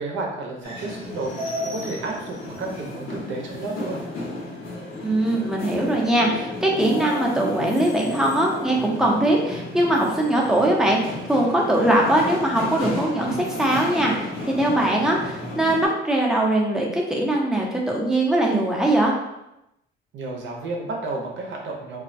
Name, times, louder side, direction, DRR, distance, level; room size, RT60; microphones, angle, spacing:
voice 1, 0.0-4.0 20.1-22.0, right 3 dB, 75° right, 0 dB, 0.6 m, -32 dB
sound 1, 0.6-15.9, left 1 dB, 80° left, 0.9 m, -33 dB
voice 2, 5.0-19.1, right 1 dB, 5° right, -2 dB, 0.5 m, -21 dB
2.3 x 2.1 x 2.5 m, 0.87 s
cardioid pair, 90°, 20 cm